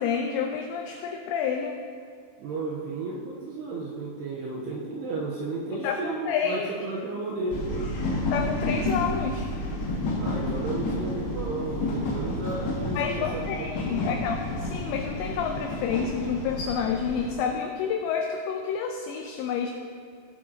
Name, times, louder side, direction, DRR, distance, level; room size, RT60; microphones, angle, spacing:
voice 1, 0.0-1.8 5.8-6.7 8.3-9.5 13.0-19.7, left 7 dB, 85° left, 3 dB, 2.5 m, -29 dB
voice 2, 2.4-7.9 10.2-14.2, right 3 dB, 80° right, -3 dB, 2.5 m, -33 dB
sound 1, 7.5-17.3, left 1 dB, 65° left, 3.0 m, -30 dB
18.0 x 7.5 x 2.8 m, 2.2 s
omnidirectional pair, 5.7 m